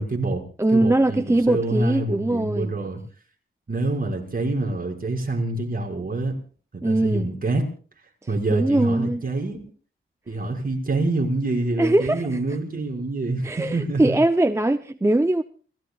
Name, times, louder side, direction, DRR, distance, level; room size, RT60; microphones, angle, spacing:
voice 1, 0.0-0.4 0.7-3.0 3.7-6.3 6.7-7.6 8.3-9.7 10.3-14.2, right 2 dB, 45° right, 5.9 m, -26 dB
voice 2, 0.6-2.7 6.8-7.3 8.5-9.2 11.8-12.4 13.4-15.4, right 1 dB, 15° right, 0.7 m, -21 dB
29.0 x 17.0 x 2.4 m
wide cardioid pair, 115°, 21 cm